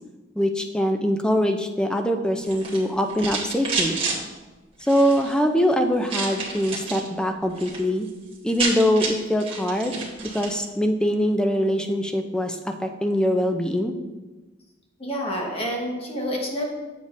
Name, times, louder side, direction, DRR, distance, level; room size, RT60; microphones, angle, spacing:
voice 1, 0.4-4.0 4.9-8.1 8.4-10.0 10.3-13.9, equal, 5° left, 5 dB, 0.4 m, -23 dB
sound 1, 2.4-4.2 4.8-5.3 6.1-7.1 7.4-7.8 8.1-8.2 8.4-10.6, right 4 dB, 30° right, 1.4 m, -30 dB
voice 2, 15.0-16.6, equal, 30° left, -1 dB, 1.3 m, -28 dB
7.9 x 7.3 x 2.6 m, 1.2 s
head